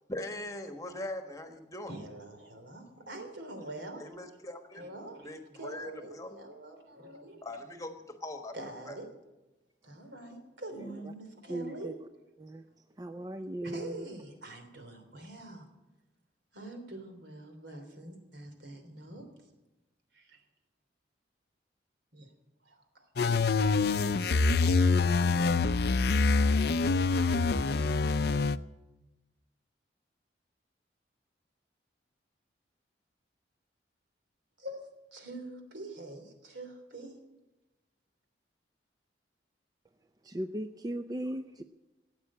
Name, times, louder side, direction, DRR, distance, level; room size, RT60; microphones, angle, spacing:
voice 1, 0.1-1.9 3.9-4.8 5.2-6.4 7.4-9.0, left 1 dB, 20° left, 6 dB, 1.3 m, -41 dB
voice 2, 1.9-4.1 4.7-7.4 8.5-9.1 9.8-11.9 13.6-15.7 16.5-19.3 20.1-20.4 22.1-22.3 22.6-23.1 34.6-37.2, right 1 dB, 75° right, 5 dB, 3.2 m, -45 dB
voice 3, 11.5-11.9 12.4-12.7 13.0-14.1 40.2-41.6, right 1 dB, 20° right, 8 dB, 0.4 m, -37 dB
sound 1, 23.2-28.6, left 4 dB, 60° left, 0.5 m, -25 dB
17.5 x 8.8 x 8.6 m, 1.0 s
head